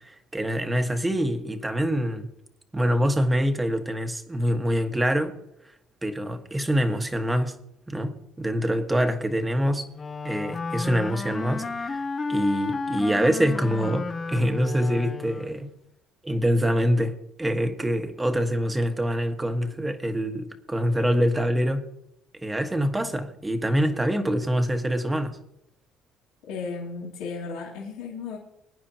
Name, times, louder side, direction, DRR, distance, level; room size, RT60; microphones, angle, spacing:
voice 1, 0.0-2.3 2.7-5.3 6.0-7.5 7.9-9.9 10.2-12.0 12.3-15.7 16.2-21.9 22.4-25.4, equal, 15° right, 1.5 m, -25 dB
Wind instrument woodwind instrument, 9.9-15.7, left 4 dB, 30° left, 1.0 m, -32 dB
voice 2, 26.5-28.4, left 4 dB, 80° left, 2.7 m, -34 dB
21.0 x 9.7 x 2.9 m
supercardioid pair, 85°, 0 cm